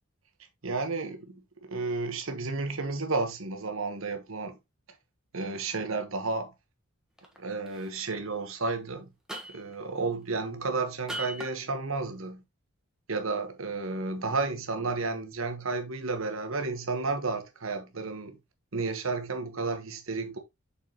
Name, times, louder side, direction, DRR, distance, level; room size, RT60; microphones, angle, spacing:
voice 1, 0.6-4.6 5.3-6.5 7.4-9.1 9.5-12.4 13.1-18.4 18.7-20.4, right 3 dB, 70° right, 1.3 m, -32 dB
sound 1, 7.2-7.4 7.7-8.0 9.3-9.8 11.1-11.6, right 1 dB, 5° right, 1.4 m, -38 dB
6.5 x 5.4 x 3.0 m
head